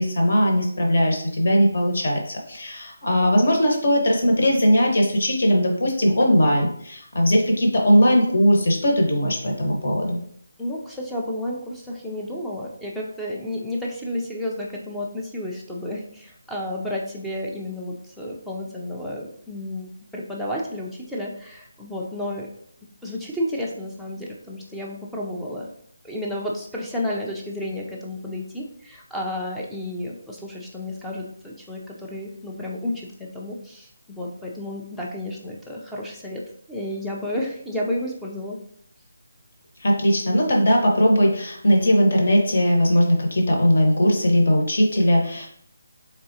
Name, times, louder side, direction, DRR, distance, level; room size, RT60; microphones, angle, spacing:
voice 1, 0.0-10.2 39.8-45.5, equal, 55° left, 0 dB, 1.1 m, -19 dB
voice 2, 10.6-22.5 23.0-25.7 26.0-36.4 36.7-38.6, left 1 dB, ahead, -4 dB, 0.4 m, -31 dB
3.7 x 3.4 x 2.7 m, 0.64 s
figure-of-eight pair, 170°, 0 cm